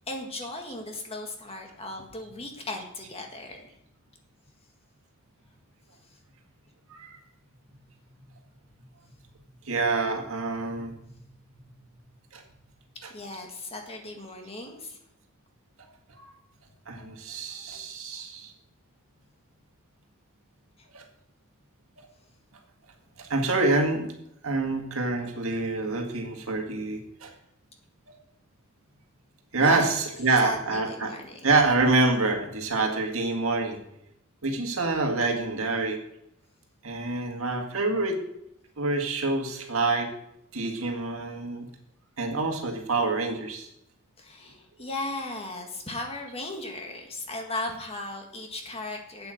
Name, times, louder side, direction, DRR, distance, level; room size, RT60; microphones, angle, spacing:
voice 1, 0.1-3.6 13.1-15.0 29.6-29.9 30.4-31.4 44.2-49.3, left 2 dB, 30° left, 2 dB, 1.8 m, -36 dB
voice 2, 6.9-7.2 9.6-10.9 12.3-12.4 13.0-13.1 16.2-16.3 16.9-18.5 20.9-21.0 23.2-24.1 24.4-27.3 29.5-31.2 31.4-33.8 34.4-36.0 36.8-38.2 38.8-40.1 40.5-41.7 42.2-43.7, right 3 dB, 70° right, 3 dB, 1.9 m, -26 dB
8.7 x 8.3 x 6.4 m, 0.79 s
head